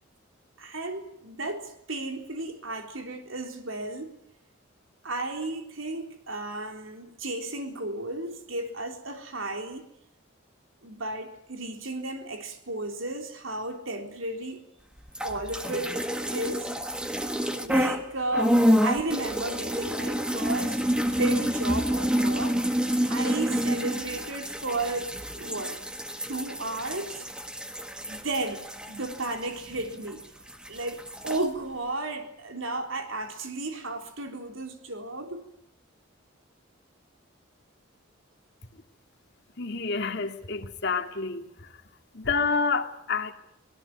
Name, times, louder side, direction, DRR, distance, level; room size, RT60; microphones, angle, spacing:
voice 1, 0.6-4.2 5.0-9.9 10.8-14.7 15.2-15.9 16.3-16.7 17.6-20.8 21.1-22.6 23.1-25.8 26.3-27.3 28.1-30.2 30.7-35.4, right 2 dB, 75° right, 3.8 m, -33 dB
sound 1, 15.1-18.0 18.3-30.2 30.5-31.4, equal, 5° right, 1.6 m, -28 dB
voice 2, 39.6-41.5 42.1-43.3, left 4 dB, 55° left, 2.2 m, -28 dB
25.5 x 18.5 x 9.6 m
head